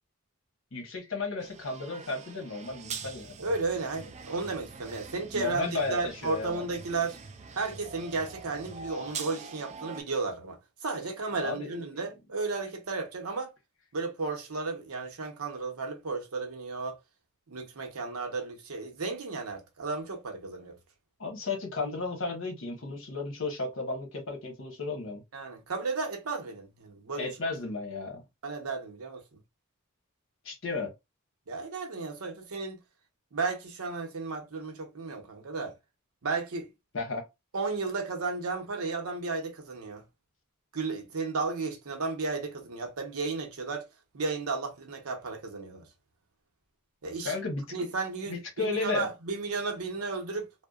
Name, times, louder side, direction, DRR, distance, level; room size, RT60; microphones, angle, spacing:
voice 1, 0.7-3.3 5.3-6.6 11.4-11.7 21.2-25.2 27.2-28.2 30.4-30.9 36.9-37.2 47.2-47.9 48.3-49.1, left 3 dB, 60° left, 1.0 m, -34 dB
sound 1, 1.4-10.0, right 5 dB, 30° right, 0.3 m, -44 dB
voice 2, 3.4-7.2 7.6-13.5 13.9-17.0 17.5-20.8 25.3-27.4 28.4-29.2 31.5-32.8 33.3-35.7 36.2-36.7 37.5-40.0 40.7-43.8 44.1-45.8 47.0-47.3 47.7-50.7, right 3 dB, 85° right, 0.7 m, -34 dB
2.7 x 2.1 x 2.3 m
head